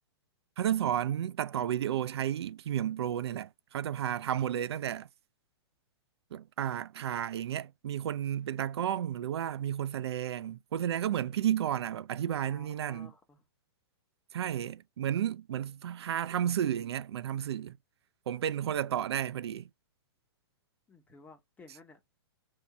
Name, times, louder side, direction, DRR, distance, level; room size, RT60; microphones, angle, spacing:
voice 1, 0.6-5.1 6.3-13.1 14.3-17.8 18.3-19.7, right 10 dB, 75° right, 0.4 m, -32 dB
voice 2, 12.4-13.4 20.9-22.2, left 3 dB, 10° left, 1.1 m, -56 dB
3.5 x 2.7 x 4.0 m
hypercardioid pair, 130°, 14 cm